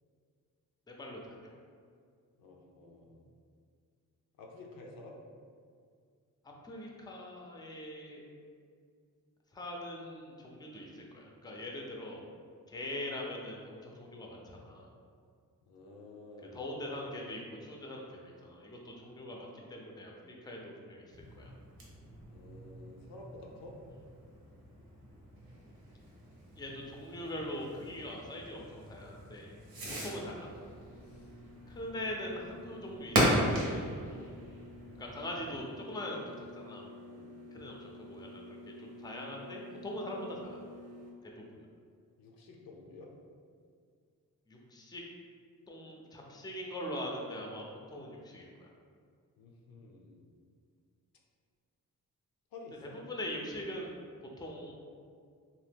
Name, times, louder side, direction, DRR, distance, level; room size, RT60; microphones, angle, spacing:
voice 1, 0.9-1.4 6.6-8.2 9.5-12.2 12.7-14.9 16.5-21.5 26.6-29.6 30.0-30.5 31.7-34.3 35.0-36.8 37.5-40.6 41.2-41.4 44.5-45.0 45.7-47.6 47.9-48.7 52.9-54.0 54.4-54.7, left 1 dB, 10° left, -1 dB, 0.5 m, -42 dB
voice 2, 2.4-3.2 4.4-5.2 15.7-16.6 22.3-23.8 29.8-30.0 31.0-31.3 37.1-37.3 42.2-43.1 49.4-50.2 52.5-53.0, left 2 dB, 85° left, 0 dB, 0.5 m, -51 dB
Fireworks, 21.1-35.7, equal, 85° right, 0.8 m, -37 dB
sound 1, 30.3-41.1, left 2 dB, 45° right, 0.6 m, -51 dB
2.8 x 2.1 x 3.4 m, 2.2 s
cardioid pair, 70°, 35 cm